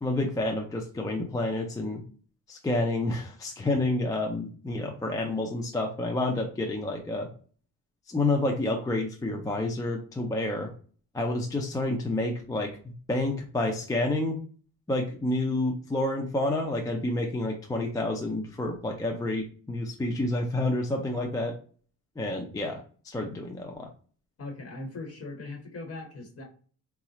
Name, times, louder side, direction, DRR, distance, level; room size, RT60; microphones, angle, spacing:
voice 1, 0.0-2.0 2.5-7.3 8.1-10.7 11.1-14.4 14.9-21.5 22.2-23.9, left 2 dB, 10° left, 1 dB, 0.4 m, -29 dB
voice 2, 24.4-26.4, left 2 dB, 40° left, 1 dB, 1.3 m, -40 dB
4.0 x 2.4 x 2.9 m, 0.42 s
cardioid pair, 145°, 37 cm